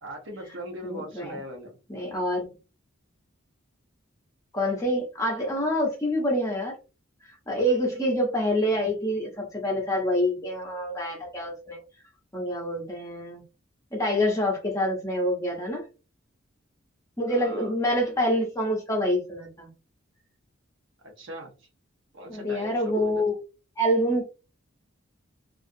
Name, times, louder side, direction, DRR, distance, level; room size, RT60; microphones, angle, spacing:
voice 1, 0.0-1.8 17.3-17.7 21.0-21.7 22.1-23.2, equal, 65° right, 2 dB, 0.8 m, -40 dB
voice 2, 0.8-1.4 1.9-2.5 4.5-6.8 7.5-11.8 12.3-13.4 13.9-15.8 17.2-19.7 22.3-23.3 23.8-24.2, equal, 15° left, -1 dB, 0.7 m, -26 dB
2.4 x 2.3 x 2.6 m, 0.32 s
head